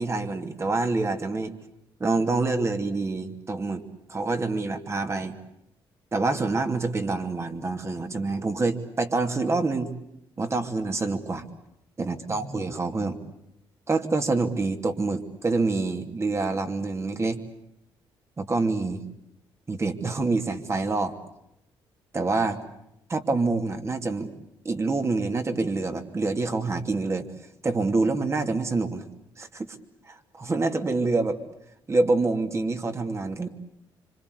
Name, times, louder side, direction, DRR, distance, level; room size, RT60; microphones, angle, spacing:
voice 1, 0.0-1.6 2.0-3.8 4.1-5.3 6.1-9.9 10.4-11.4 12.0-13.2 13.9-17.4 18.4-19.0 19.7-21.2 22.1-22.6 23.1-24.3 24.6-27.3 27.6-29.0 29.4-29.8 30.1-31.4 31.9-33.5, right 3 dB, 30° right, 6 dB, 2.8 m, -26 dB
26.5 x 25.5 x 8.2 m, 0.82 s
cardioid pair, 85°, 9 cm